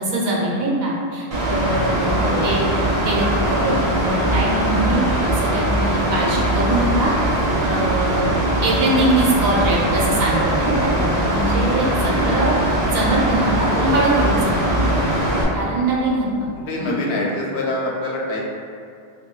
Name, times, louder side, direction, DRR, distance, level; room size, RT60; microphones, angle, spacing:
voice 1, 0.0-2.7 3.0-8.3 8.6-12.5 12.9-15.0 15.5-16.5 16.8-16.9, right 1 dB, 70° right, -4 dB, 0.8 m, -22 dB
Mechanical fan, 1.3-15.4, right 1 dB, 45° right, 0.5 m, -20 dB
voice 2, 2.1-2.6 12.0-12.6 13.7-13.9 16.7-18.4, left 1 dB, 75° left, -3 dB, 0.8 m, -26 dB
2.3 x 2.2 x 3.7 m, 2.3 s
omnidirectional pair, 1.1 m